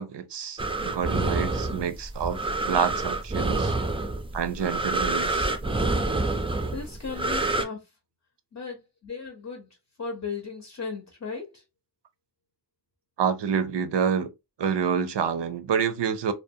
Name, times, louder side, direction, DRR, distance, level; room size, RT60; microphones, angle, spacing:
voice 1, 0.0-3.7 4.3-5.5 13.2-14.3 14.6-16.3, right 7 dB, 75° right, 0.5 m, -28 dB
sound 1, 0.6-7.6, right 2 dB, 15° right, 0.3 m, -27 dB
voice 2, 6.7-7.9 8.5-11.6, left 5 dB, 40° left, 0.7 m, -36 dB
2.5 x 2.2 x 2.6 m
wide cardioid pair, 80°, 42 cm